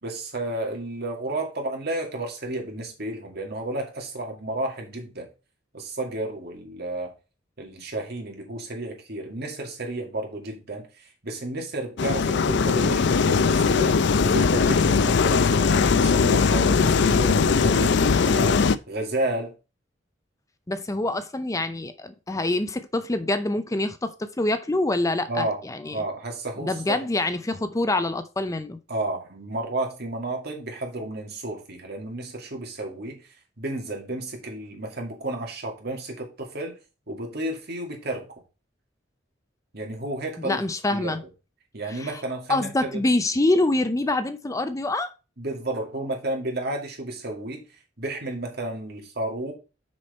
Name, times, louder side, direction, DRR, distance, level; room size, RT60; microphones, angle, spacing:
voice 1, 0.0-5.3 5.7-7.1 7.6-14.0 14.2-19.6 25.3-25.6 25.9-27.0 28.9-36.8 37.1-38.3 39.7-40.6 40.9-41.2 41.7-43.0 45.4-47.6 48.0-49.5, right 2 dB, 55° right, 2.4 m, -32 dB
sound 1, 12.0-18.8, left 5 dB, 65° left, 0.5 m, -20 dB
voice 2, 20.7-26.0 26.6-28.8 40.4-41.2 41.9-42.1 42.5-45.1, left 2 dB, 15° left, 0.5 m, -25 dB
6.3 x 6.0 x 4.3 m
head